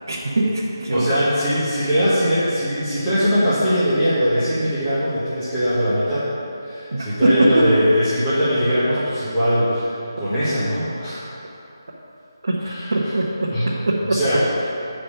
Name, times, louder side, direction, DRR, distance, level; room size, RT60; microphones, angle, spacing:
voice 1, 0.1-1.1 6.9-7.7 12.4-13.5 13.8-14.2, right 2 dB, 50° right, -6 dB, 1.1 m, -21 dB
voice 2, 0.9-6.3 6.6-11.3 12.6-12.9 13.5-13.7 14.1-14.4, equal, 5° left, -15 dB, 1.3 m, -21 dB
9.2 x 5.0 x 5.7 m, 2.8 s
figure-of-eight pair, 180°, 2 cm